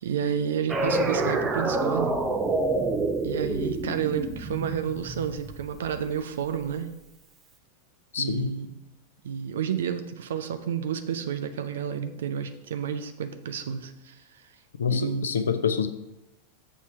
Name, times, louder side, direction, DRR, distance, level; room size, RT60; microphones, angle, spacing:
voice 1, 0.0-2.2 3.2-6.9 8.2-8.8 9.2-14.2 14.9-15.3, right 8 dB, 60° right, 9 dB, 0.5 m, -30 dB
sound 1, 0.7-6.0, right 2 dB, 20° right, 0.7 m, -27 dB
voice 2, 8.1-8.5 14.8-15.9, left 7 dB, 65° left, 9 dB, 0.6 m, -26 dB
6.9 x 4.5 x 5.7 m, 0.92 s
figure-of-eight pair, 90°, 0 cm